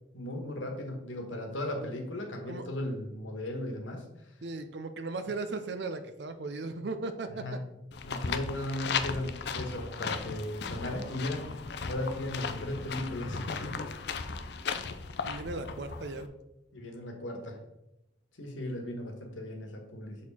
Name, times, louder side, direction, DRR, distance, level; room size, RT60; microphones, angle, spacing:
voice 1, 0.1-4.1 7.4-7.6 8.0-11.5 11.8-14.0 16.7-17.6 18.4-20.2, left 1 dB, 90° left, 3 dB, 1.4 m, -36 dB
voice 2, 4.4-7.6 15.2-16.3, right 3 dB, 65° right, 9 dB, 0.6 m, -37 dB
sound 1, 7.9-16.3, left 5 dB, 60° left, 0.5 m, -36 dB
6.4 x 4.4 x 4.2 m, 0.88 s
head